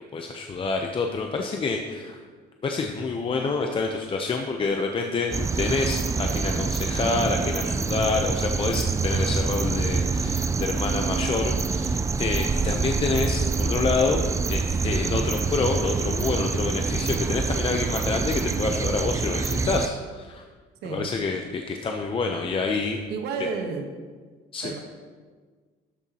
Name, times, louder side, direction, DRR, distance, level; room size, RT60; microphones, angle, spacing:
voice 1, 0.1-2.2 2.6-14.2 14.5-20.4 20.8-23.0 24.5-24.7, left 4 dB, 30° left, 3 dB, 0.7 m, -27 dB
Night ambience, 5.3-19.9, right 4 dB, 20° right, 0.3 m, -26 dB
voice 2, 23.1-23.9 24.6-24.8, right 5 dB, 80° right, 4 dB, 1.2 m, -31 dB
12.5 x 7.0 x 2.9 m, 1.5 s
cardioid pair, 110°, 17 cm